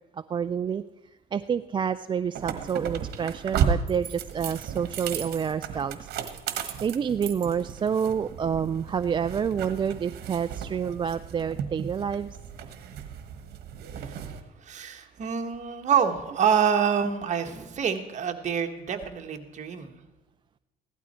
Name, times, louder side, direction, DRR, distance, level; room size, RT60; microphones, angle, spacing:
voice 1, 0.1-0.8 1.3-6.1 6.8-12.3, right 7 dB, 30° right, 11 dB, 0.3 m, -28 dB
sound 1, 2.3-14.4, right 7 dB, 70° right, 1.3 m, -34 dB
voice 2, 13.9-14.2 14.6-19.9, right 7 dB, 45° right, 5 dB, 1.5 m, -27 dB
16.0 x 12.0 x 4.4 m, 1.0 s
cardioid pair, 110°, 17 cm